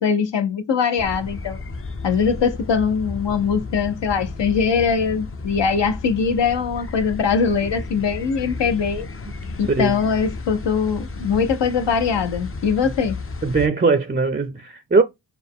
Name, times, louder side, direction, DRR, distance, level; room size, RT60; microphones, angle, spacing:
voice 1, 0.0-1.6 2.0-9.1 9.6-13.2, left 6 dB, 65° left, 0.8 m, -21 dB
sound 1, 1.0-13.7, left 3 dB, 30° left, 0.5 m, -33 dB
voice 2, 9.7-10.0 12.8-12.9 13.4-15.0, right 4 dB, 20° right, 0.4 m, -20 dB
4.3 x 2.1 x 3.4 m
wide cardioid pair, 80°, 46 cm